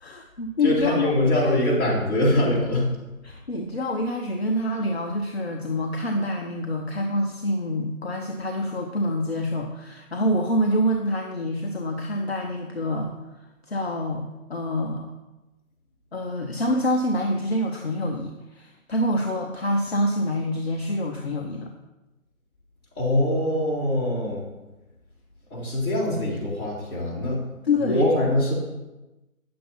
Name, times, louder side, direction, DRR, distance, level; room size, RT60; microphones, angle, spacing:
voice 1, 0.0-1.6 3.2-13.2 13.7-15.1 16.1-21.7 27.6-28.1, left 1 dB, 45° left, 2 dB, 0.9 m, -26 dB
voice 2, 0.6-2.9 23.0-24.4 25.5-27.4 27.8-28.5, left 1 dB, 15° left, -12 dB, 3.7 m, -23 dB
9.5 x 7.5 x 4.3 m, 1.1 s
figure-of-eight pair, 165°, 42 cm